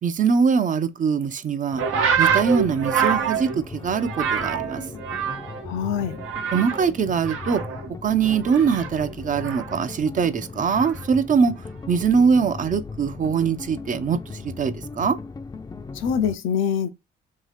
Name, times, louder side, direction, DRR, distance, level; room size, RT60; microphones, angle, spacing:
voice 1, 0.0-1.8 2.2-4.8 6.5-7.6 8.0-11.5 11.9-15.2, right 6 dB, 40° right, 0.5 m, -22 dB
sound 1, 1.7-16.4, left 4 dB, 20° left, 0.4 m, -38 dB
sound 2, 1.8-5.7 6.0-6.9 7.2-9.9 10.7-11.1, right 7 dB, 90° right, 0.8 m, -26 dB
voice 2, 5.7-6.2 15.9-16.9, left 7 dB, 80° left, 0.6 m, -24 dB
2.7 x 2.7 x 3.2 m
cardioid pair, 90°, 20 cm